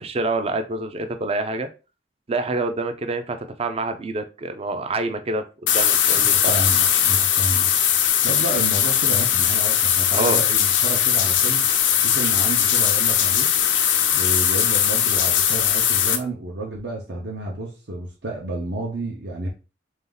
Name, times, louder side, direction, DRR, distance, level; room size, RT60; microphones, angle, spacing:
voice 1, 0.0-1.7 2.3-6.6 10.1-10.4, right 2 dB, 35° right, 8 dB, 0.5 m, -27 dB
sound 1, 5.7-16.2, left 9 dB, 85° left, 0.6 m, -19 dB
voice 2, 6.1-7.7 8.2-11.7 12.0-13.5 14.1-19.5, right 2 dB, 65° right, -2 dB, 0.8 m, -30 dB
3.5 x 2.8 x 3.8 m, 0.31 s
head